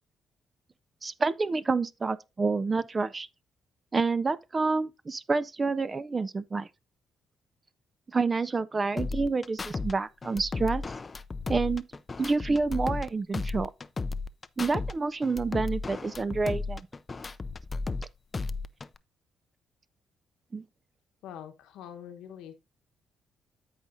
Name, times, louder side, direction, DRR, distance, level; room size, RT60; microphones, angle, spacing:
voice 1, 1.0-3.3 3.9-6.7 8.1-10.8 11.5-11.8 12.2-13.7 14.6-16.8 20.5-20.6, right 4 dB, 30° right, 0.4 m, -28 dB
sound 1, 9.0-9.9 10.2-13.1 13.3-14.9 15.2-18.0 18.3-19.0, left 3 dB, 30° left, 0.4 m, -34 dB
voice 2, 21.2-22.5, left 9 dB, 90° left, 1.1 m, -44 dB
13.5 x 4.9 x 2.6 m
cardioid pair, 90°, 0 cm